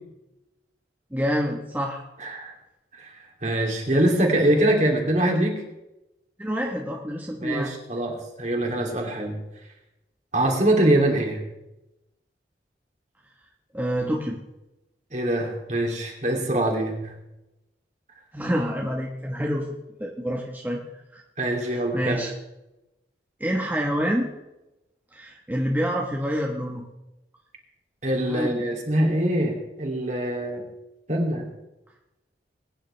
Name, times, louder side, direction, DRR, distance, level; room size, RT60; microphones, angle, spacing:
voice 1, 1.1-2.0 6.4-7.7 13.7-14.4 18.3-19.7 20.0-20.8 21.1-21.2 21.6-22.3 23.4-24.3 25.1-26.8 28.2-28.7, equal, 10° right, -1 dB, 1.2 m, -27 dB
voice 2, 2.2-2.5 2.9-5.6 7.4-9.4 10.3-11.4 15.1-17.1 21.4-22.2 28.0-30.7 31.1-31.5, right 1 dB, 40° right, 1 dB, 2.7 m, -24 dB
21.5 x 10.0 x 3.3 m, 0.94 s
head